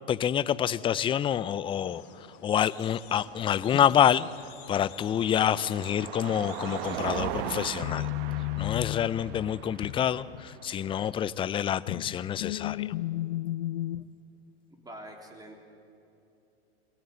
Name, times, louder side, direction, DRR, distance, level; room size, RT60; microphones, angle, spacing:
voice 1, 0.1-2.0 2.4-4.3 4.7-8.1 8.6-12.9, left 9 dB, 15° left, 17 dB, 0.4 m, -27 dB
sound 1, 1.6-7.3, left 9 dB, 50° left, 2.5 m, -51 dB
Car passing by, 3.0-11.3, right 11 dB, 55° right, 1.2 m, -39 dB
sound 2, 3.7-4.4 7.8-10.9 11.4-14.1, left 16 dB, 70° left, 0.7 m, -34 dB
voice 2, 14.8-15.6, right 1 dB, 10° right, 3 dB, 3.6 m, -45 dB
22.5 x 17.0 x 9.4 m, 2.7 s
hypercardioid pair, 115°, 32 cm